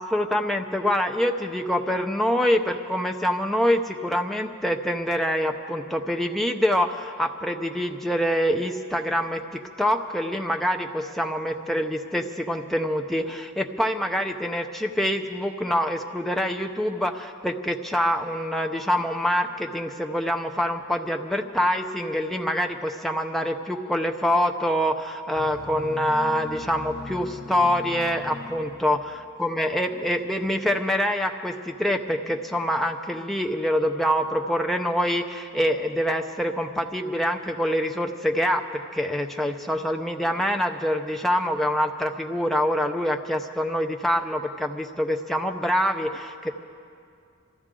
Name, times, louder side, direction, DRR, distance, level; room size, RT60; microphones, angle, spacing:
voice 1, 0.0-46.5, equal, ahead, 3 dB, 0.6 m, -25 dB
sound 1, 25.4-29.4, left 2 dB, 45° left, 0.7 m, -40 dB
24.5 x 14.0 x 3.7 m, 2.3 s
head